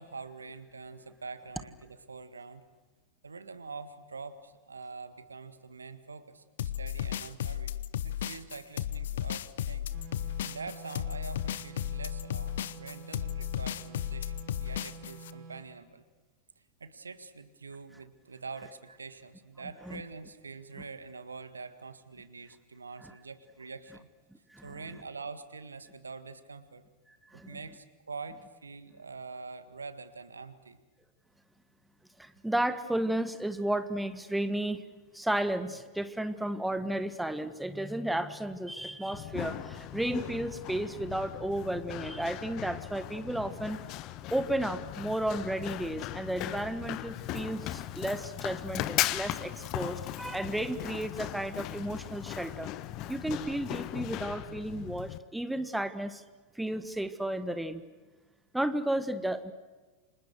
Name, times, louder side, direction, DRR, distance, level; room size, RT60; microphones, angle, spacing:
voice 1, 0.0-2.6 3.2-6.4 6.8-7.8 8.0-9.9 10.4-16.0 16.8-24.1 24.6-26.8 27.3-30.8, right 4 dB, 75° right, 12 dB, 1.7 m, -45 dB
sound 1, 6.6-15.3, left 11 dB, 60° left, 0.9 m, -34 dB
sound 2, 9.9-15.7, right 3 dB, 45° right, 6.6 m, -48 dB
voice 2, 24.5-24.8 27.3-27.6 32.2-34.8 35.1-43.8 44.3-52.7 53.0-56.2 56.5-57.8 58.5-59.5, right 1 dB, 5° right, 12 dB, 1.5 m, -33 dB
Run, 39.1-55.2, left 14 dB, 40° left, 1.2 m, -38 dB
30.0 x 26.5 x 6.4 m, 1.3 s
figure-of-eight pair, 90°, 0 cm